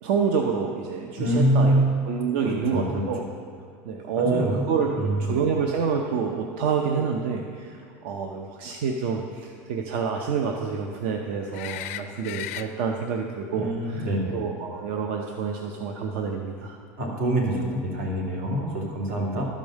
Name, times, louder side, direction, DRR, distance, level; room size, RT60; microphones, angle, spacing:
voice 1, 0.0-3.2 3.8-16.8, right 6 dB, 55° right, 2 dB, 0.7 m, -28 dB
voice 2, 1.2-1.9 2.4-3.0 4.2-4.6 4.9-5.2 13.5-14.4 17.0-19.5, right 1 dB, 80° right, -2 dB, 2.6 m, -25 dB
sound 1, 11.5-12.7 15.6-15.7, left 13 dB, 70° left, 0.5 m, -35 dB
12.5 x 5.3 x 6.4 m, 2.2 s
cardioid pair, 175°, 8 cm